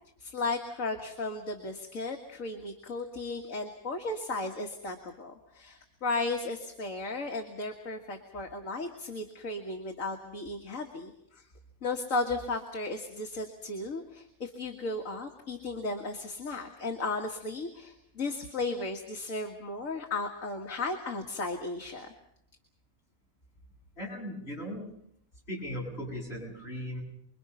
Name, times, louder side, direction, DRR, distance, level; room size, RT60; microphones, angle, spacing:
voice 1, 0.2-11.5 11.8-22.1, left 3 dB, 65° left, 2 dB, 2.2 m, -35 dB
voice 2, 24.0-24.9 25.5-27.0, equal, 45° left, -2 dB, 8.4 m, -38 dB
30.0 x 22.5 x 5.7 m, 0.74 s
omnidirectional pair, 1.5 m